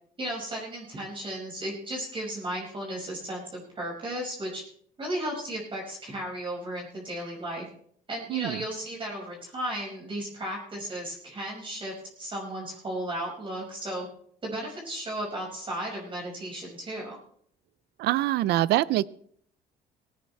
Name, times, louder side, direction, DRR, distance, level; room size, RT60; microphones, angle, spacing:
voice 1, 0.2-4.6 5.0-7.6 8.1-14.1 14.4-17.2, right 1 dB, 30° right, -2 dB, 5.9 m, -35 dB
voice 2, 18.0-19.1, right 15 dB, 80° right, 19 dB, 0.5 m, -24 dB
18.5 x 16.5 x 3.4 m, 0.64 s
cardioid pair, 110°, 17 cm